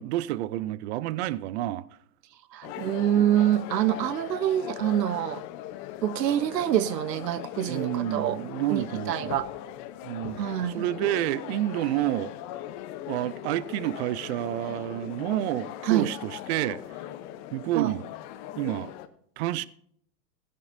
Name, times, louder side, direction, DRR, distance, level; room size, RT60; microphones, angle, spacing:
voice 1, 0.0-1.9 2.7-2.8 7.7-9.3 10.0-10.4 10.7-12.3 13.1-16.8 17.5-18.1 18.6-18.9 19.4-19.7, right 15 dB, 45° right, 0.6 m, -29 dB
voice 2, 2.5-5.4 6.0-8.4 8.7-9.5 10.4-10.9 15.8-16.1 17.7-17.9, right 11 dB, 80° right, 0.9 m, -26 dB
sound 1, 2.6-19.1, left 12 dB, 35° left, 0.9 m, -39 dB
15.0 x 11.0 x 2.7 m
hypercardioid pair, 135°, 50 cm